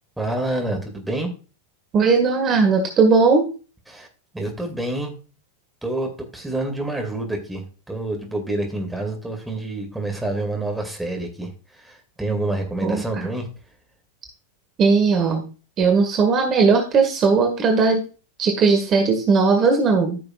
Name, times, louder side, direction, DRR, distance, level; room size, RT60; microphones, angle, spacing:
voice 1, 0.2-1.3 3.9-4.1 4.3-5.1 5.8-13.5, right 2 dB, 5° right, 2 dB, 2.4 m, -28 dB
voice 2, 1.9-3.5 12.8-13.3 14.8-15.4 15.8-18.0 18.4-20.2, right 4 dB, 30° right, 4 dB, 1.8 m, -18 dB
14.0 x 6.7 x 2.4 m, 0.35 s
figure-of-eight pair, 90°, 0 cm